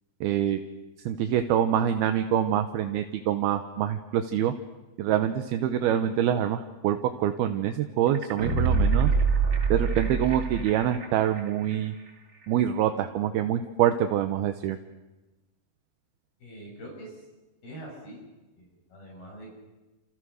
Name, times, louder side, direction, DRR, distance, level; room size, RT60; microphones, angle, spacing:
voice 1, 0.2-0.6 1.1-4.5 5.0-9.1 9.7-11.9 12.5-14.8, right 10 dB, 70° right, 8 dB, 2.6 m, -25 dB
sound 1, 8.1-11.0 11.4-11.5, right 5 dB, 20° right, 2.8 m, -24 dB
voice 2, 16.4-17.2 17.6-18.2 18.6-19.6, right 1 dB, 55° left, -2 dB, 8.1 m, -44 dB
29.5 x 28.0 x 6.5 m, 1.1 s
omnidirectional pair, 5.2 m